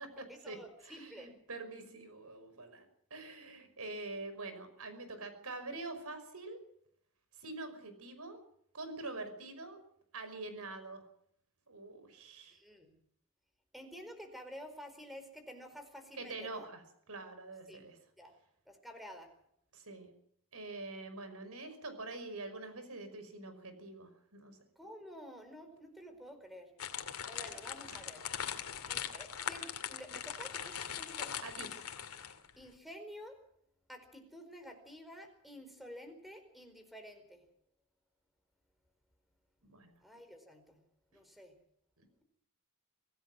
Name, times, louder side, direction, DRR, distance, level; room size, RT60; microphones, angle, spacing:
voice 1, 0.3-1.4 12.5-12.9 13.7-16.7 17.7-17.8 18.2-18.3 18.7-19.3 24.8-26.7 27.3-28.2 28.9-31.4 32.6-33.4 33.9-37.4 40.0-40.8 41.1-41.5, equal, ahead, 7 dB, 4.6 m, -50 dB
voice 2, 0.8-2.9 3.1-6.6 7.4-8.4 8.7-9.8 10.1-11.0 11.7-12.6 16.1-18.0 19.7-20.1 20.5-24.6 27.4-27.6 27.9-28.0 31.4-31.7 39.6-39.9, right 2 dB, 75° right, 9 dB, 5.5 m, -45 dB
sound 1, 26.8-32.5, left 8 dB, 80° left, 2.5 m, -41 dB
25.5 x 17.0 x 6.3 m, 0.71 s
head